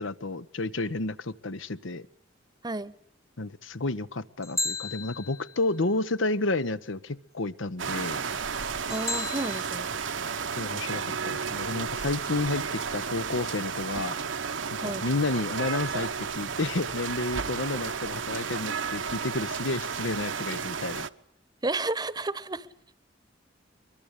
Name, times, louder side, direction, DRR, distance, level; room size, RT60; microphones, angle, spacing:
voice 1, 0.0-2.1 3.4-8.2 10.6-14.1 14.7-21.1, left 2 dB, 85° left, 13 dB, 1.1 m, -31 dB
voice 2, 2.6-2.9 8.9-9.9 14.8-15.0 21.6-22.7, right 2 dB, 20° right, 18 dB, 0.9 m, -32 dB
sound 1, 4.4-5.8 8.9-9.6, left 3 dB, 15° left, 1.2 m, -33 dB
sound 2, 7.8-21.1, right 6 dB, 80° right, 1.0 m, -32 dB
23.0 x 23.0 x 8.3 m, 0.67 s
head